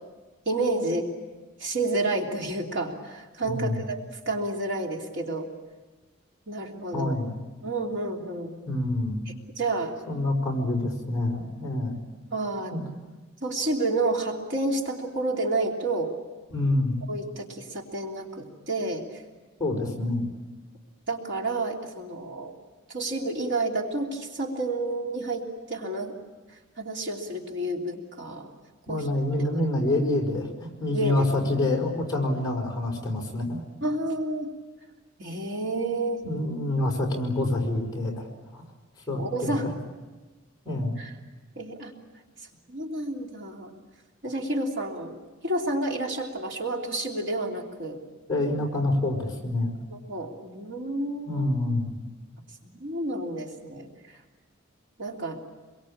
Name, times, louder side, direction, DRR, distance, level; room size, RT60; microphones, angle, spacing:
voice 1, 0.4-1.1 1.6-5.5 6.5-7.2 7.6-8.6 9.3-9.9 12.3-12.7 13.4-16.1 17.1-19.1 21.1-22.5 22.9-26.2 26.8-28.5 28.9-29.0 30.9-31.2 33.8-34.5 35.2-36.2 39.1-39.7 41.0-41.1 41.6-41.9 42.7-43.7 44.2-45.1 45.4-48.0 49.9-51.5 52.6-53.9 55.0-55.4, right 2 dB, 55° right, 0 dB, 3.1 m, -30 dB
voice 2, 3.4-3.8 6.9-7.4 8.6-9.3 10.1-12.0 12.7-12.8 16.5-16.9 19.6-20.2 28.9-33.6 36.2-38.3 38.5-38.6 39.1-39.7 40.6-41.0 48.3-49.7 51.3-51.9, left 2 dB, 20° left, -1 dB, 5.0 m, -27 dB
26.5 x 23.0 x 8.7 m, 1.3 s
head